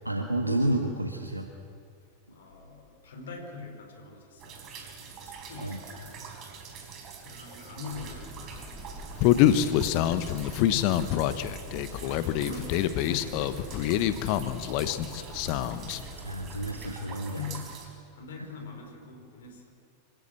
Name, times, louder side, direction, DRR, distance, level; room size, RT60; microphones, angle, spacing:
voice 1, 0.0-1.5 5.6-5.8 9.4-9.7 16.2-17.4, right 1 dB, 85° right, 4 dB, 1.4 m, -30 dB
voice 2, 2.3-6.3 7.2-9.0 10.3-11.2 12.0-15.5 17.3-19.7, left 4 dB, 60° left, 4 dB, 4.3 m, -44 dB
sound 1, 4.4-17.9, right 6 dB, 35° right, 4.4 m, -45 dB
sound 2, 7.9-16.9, equal, 10° right, 3.9 m, -45 dB
Human voice, 9.2-16.0, left 12 dB, 45° left, 1.0 m, -26 dB
26.0 x 16.0 x 7.7 m, 2.3 s
figure-of-eight pair, 90°, 0 cm